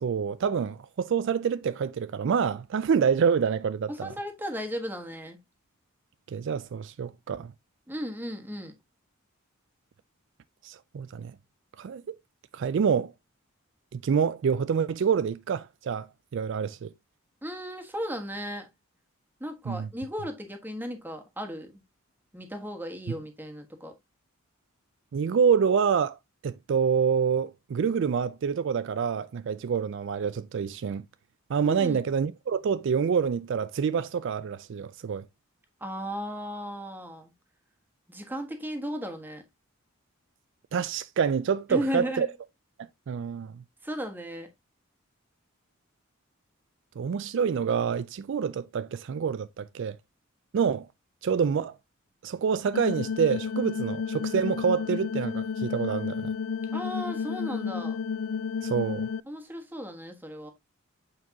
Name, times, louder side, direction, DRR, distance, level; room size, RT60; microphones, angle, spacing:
voice 1, 0.0-4.1 6.3-7.5 10.6-11.3 11.8-12.2 12.5-13.1 13.9-16.9 19.7-19.9 25.1-26.2 26.4-31.0 31.5-35.2 40.7-42.3 43.1-43.6 47.0-50.0 50.5-50.9 51.2-51.7 52.2-56.3 58.6-59.1, right 6 dB, 60° right, 0.3 m, -27 dB
voice 2, 3.9-5.4 7.9-8.7 17.4-18.7 19.4-21.8 22.3-23.9 31.6-32.0 35.8-37.3 38.1-39.4 41.7-42.3 43.8-44.5 56.7-58.0 59.3-60.5, equal, 10° right, 1.4 m, -35 dB
sound 1, 52.7-59.2, left 6 dB, 70° left, 0.4 m, -31 dB
8.4 x 4.6 x 2.7 m
head